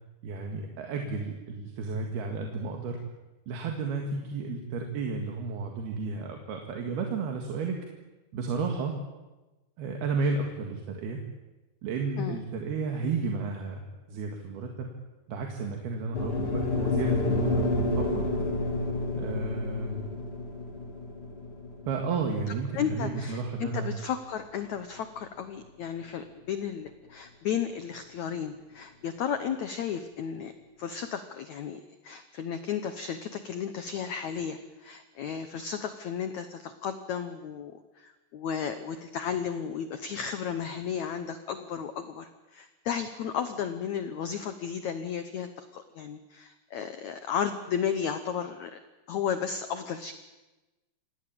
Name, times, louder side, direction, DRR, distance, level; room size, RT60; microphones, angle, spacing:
voice 1, 0.2-3.0 3.5-7.8 8.3-8.9 9.8-11.2 11.8-14.9 15.3-18.2 19.1-20.2 21.9-23.9, right 4 dB, 70° right, 3 dB, 3.8 m, -32 dB
sound 1, 16.1-24.4, left 2 dB, 35° left, 4.0 m, -30 dB
voice 2, 22.7-48.8 49.1-50.1, left 8 dB, 75° left, 10 dB, 1.7 m, -34 dB
27.0 x 18.5 x 8.7 m, 1.1 s
omnidirectional pair, 4.7 m